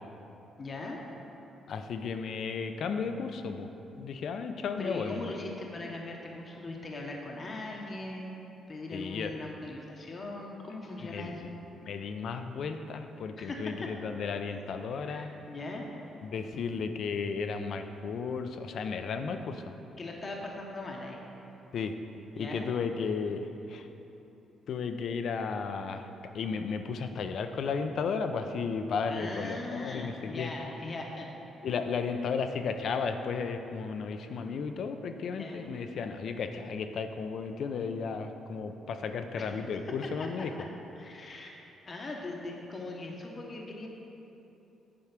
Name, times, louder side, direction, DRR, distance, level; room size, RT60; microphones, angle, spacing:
voice 1, 0.6-1.0 4.8-8.3 8.7-11.3 13.4-13.9 14.9-15.9 20.0-21.2 22.3-22.7 29.0-31.3 31.6-31.7 35.2-35.6 39.3-39.7 40.2-40.3 41.0-41.5 41.8-43.9, left 2 dB, 35° left, 0 dB, 0.9 m, -40 dB
voice 2, 1.7-3.7 4.0-5.3 8.9-9.4 11.0-11.5 11.8-15.3 16.2-19.7 21.7-21.9 22.4-23.9 24.7-26.1 26.3-30.5 31.6-40.5, left 5 dB, 60° left, 7 dB, 0.5 m, -34 dB
8.7 x 4.8 x 5.9 m, 3.0 s
cardioid pair, 125°, 0 cm